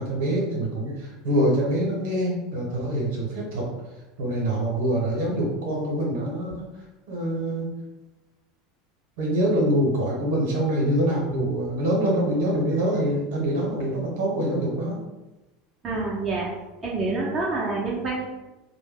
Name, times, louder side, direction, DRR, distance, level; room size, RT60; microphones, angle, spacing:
voice 1, 0.0-3.7 4.2-6.6 7.1-7.7 9.2-15.0, right 1 dB, 60° right, -2 dB, 0.9 m, -25 dB
voice 2, 15.8-16.5 16.8-18.3, right 3 dB, 25° right, -4 dB, 0.6 m, -27 dB
2.6 x 2.1 x 3.6 m, 1.0 s
figure-of-eight pair, 75°, 0 cm